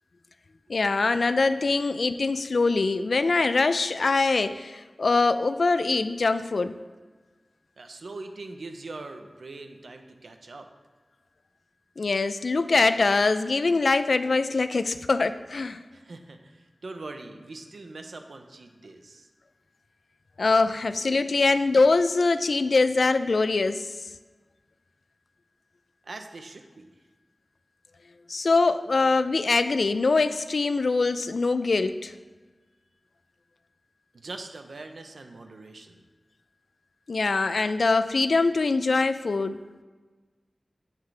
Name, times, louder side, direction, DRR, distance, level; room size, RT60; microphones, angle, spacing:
voice 1, 0.7-6.8 12.0-15.8 20.4-24.0 28.3-32.1 37.1-39.6, left 3 dB, 80° left, 12 dB, 0.4 m, -23 dB
voice 2, 7.8-10.7 15.9-19.3 26.0-27.0 34.1-36.0, right 3 dB, 90° right, 6 dB, 0.8 m, -42 dB
9.5 x 7.4 x 3.3 m, 1.3 s
wide cardioid pair, 80°, 0 cm